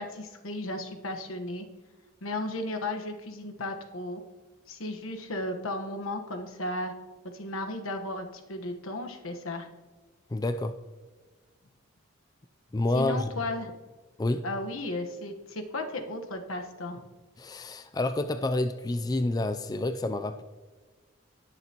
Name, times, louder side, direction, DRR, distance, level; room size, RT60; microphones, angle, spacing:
voice 1, 0.0-1.7 2.2-4.2 4.7-6.9 7.2-9.7 12.9-13.7 14.4-17.0, left 1 dB, 85° left, 5 dB, 1.2 m, -35 dB
voice 2, 10.3-10.7 12.7-13.3 14.2-14.5 17.4-20.4, left 2 dB, 20° left, 9 dB, 0.3 m, -28 dB
19.5 x 6.8 x 2.9 m, 1.3 s
head